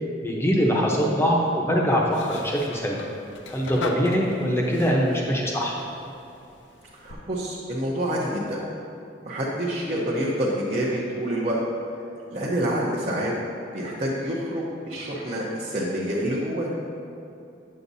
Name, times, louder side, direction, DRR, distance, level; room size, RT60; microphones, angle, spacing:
voice 1, 0.2-3.0 3.5-5.8, equal, 15° left, -2 dB, 0.8 m, -23 dB
sound 1, 2.1-7.1, left 3 dB, 90° left, 0.5 m, -39 dB
voice 2, 7.0-8.6 9.2-11.6 12.3-13.3 13.7-16.7, right 1 dB, 40° right, -7 dB, 0.8 m, -27 dB
8.4 x 7.1 x 2.7 m, 2.7 s
head